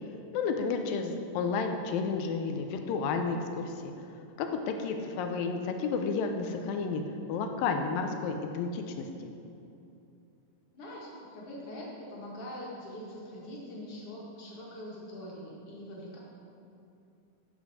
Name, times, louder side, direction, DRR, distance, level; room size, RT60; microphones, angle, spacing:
voice 1, 0.3-3.8 4.4-7.0 7.3-9.1, left 5 dB, 85° left, 5 dB, 2.5 m, -31 dB
voice 2, 10.7-16.2, left 1 dB, 45° left, -4 dB, 2.6 m, -43 dB
11.5 x 5.5 x 6.3 m, 2.7 s
omnidirectional pair, 3.9 m